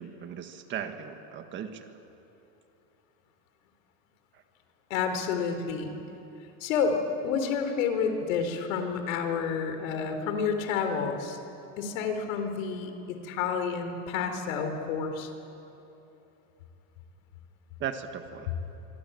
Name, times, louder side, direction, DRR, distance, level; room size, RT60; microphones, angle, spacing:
voice 1, 0.0-1.9 17.8-18.5, right 8 dB, 30° right, 7 dB, 1.6 m, -37 dB
voice 2, 4.9-6.0 6.6-11.4 11.8-15.3, left 6 dB, 80° left, 6 dB, 4.0 m, -29 dB
25.0 x 24.5 x 9.2 m, 3.0 s
supercardioid pair, 165°, 39 cm